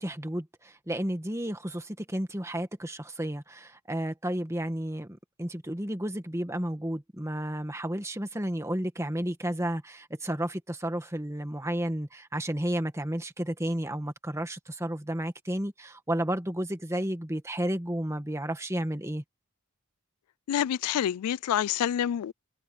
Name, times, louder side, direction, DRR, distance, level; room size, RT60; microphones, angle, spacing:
voice 1, 0.0-19.2, right 1 dB, 15° right, 1.7 m, -32 dB
voice 2, 20.5-22.3, left 10 dB, 80° left, 0.3 m, -27 dB
head